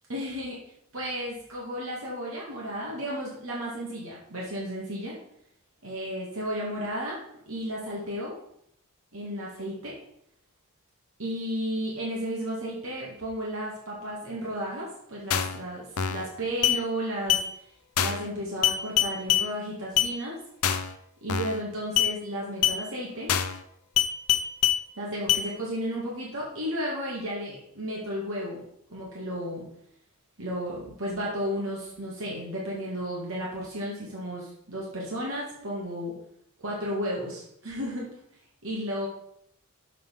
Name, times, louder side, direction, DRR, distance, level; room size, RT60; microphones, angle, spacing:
voice 1, 0.1-0.6 0.9-5.2 5.8-7.2 7.5-8.4 9.1-9.9 11.2-17.4 18.0-20.4 21.2-23.3 25.0-28.6 28.9-29.7 30.4-36.1 36.6-38.1 38.6-39.1, equal, 65° right, -4 dB, 2.2 m, -33 dB
sound 1, 15.3-15.6 16.0-16.3 16.6-16.8 17.3-17.5 18.0-18.3 18.6-19.5 20.0-20.1 20.6-20.9 21.3-21.6 22.0-22.1 22.6-22.8 23.3-23.6 24.0-24.8 25.3-25.5, left 10 dB, 85° left, 0.6 m, -24 dB
7.4 x 5.4 x 5.4 m, 0.72 s
head